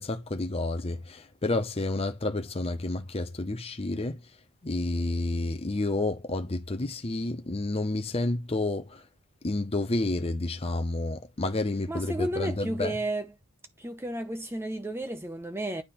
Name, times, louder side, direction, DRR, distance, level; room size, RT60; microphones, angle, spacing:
voice 1, 0.0-4.2 4.6-9.0 9.4-13.0, left 2 dB, 25° left, 0.7 m, -30 dB
voice 2, 11.9-13.3 13.8-15.8, right 1 dB, 10° right, 0.8 m, -32 dB
9.4 x 3.5 x 4.2 m
head